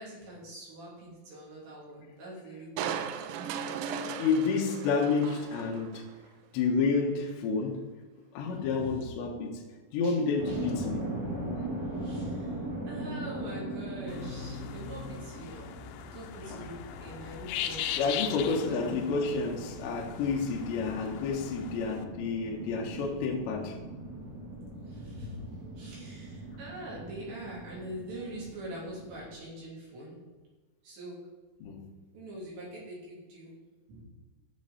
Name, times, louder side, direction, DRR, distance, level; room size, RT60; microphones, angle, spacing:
voice 1, 0.0-3.1 3.8-4.5 8.4-9.0 10.0-10.2 10.5-10.7 11.6-11.7 11.9-12.6 12.9-15.7 16.1-18.1 18.4-19.0 19.5-19.6 24.8-25.4 25.8-30.2 30.8-31.3 32.1-33.5 33.9-34.0, right 1 dB, 60° right, -6 dB, 5.0 m, -44 dB
Crushing, 2.8-6.1 6.6-6.7, right 7 dB, 90° right, 3.5 m, -37 dB
voice 2, 4.2-6.0 6.5-7.8 8.3-9.6 9.9-11.0 16.5-16.7 17.5-17.6 18.0-23.8 31.6-31.9, left 4 dB, 70° left, 0 dB, 3.2 m, -30 dB
sound 1, 10.4-29.3, right 1 dB, 5° right, 3.0 m, -40 dB
sound 2, 14.1-22.0, left 10 dB, 90° left, 2.5 m, -39 dB
15.5 x 6.4 x 4.2 m, 1.3 s
omnidirectional pair, 5.9 m